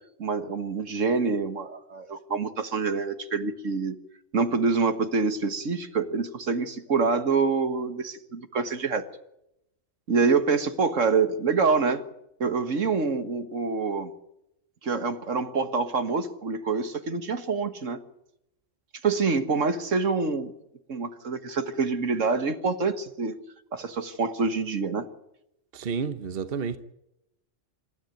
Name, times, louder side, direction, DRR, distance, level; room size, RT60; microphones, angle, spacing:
voice 1, 0.2-3.9 4.3-9.0 10.1-12.0 12.4-14.1 14.8-18.0 19.0-20.5 20.9-23.4 23.7-25.1, right 4 dB, 80° right, 1.9 m, -26 dB
voice 2, 25.7-26.8, right 6 dB, 50° right, 1.2 m, -30 dB
26.5 x 13.5 x 9.3 m
omnidirectional pair, 1.3 m